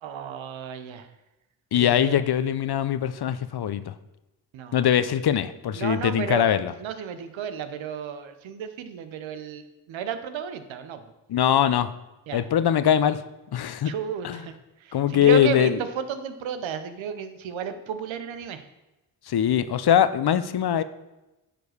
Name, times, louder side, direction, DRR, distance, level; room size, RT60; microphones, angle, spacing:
voice 1, 0.0-1.1 1.7-2.2 4.5-4.8 5.7-9.6 9.9-11.0 12.3-12.4 13.8-14.5 14.8-18.6, right 7 dB, 85° right, 10 dB, 1.0 m, -33 dB
voice 2, 1.7-3.9 4.7-6.7 11.3-11.9 12.3-13.2 13.5-13.9 14.2-14.4 14.9-15.8 19.3-20.8, left 10 dB, 55° left, 14 dB, 0.7 m, -22 dB
10.0 x 5.2 x 6.5 m, 0.99 s
supercardioid pair, 50°, 46 cm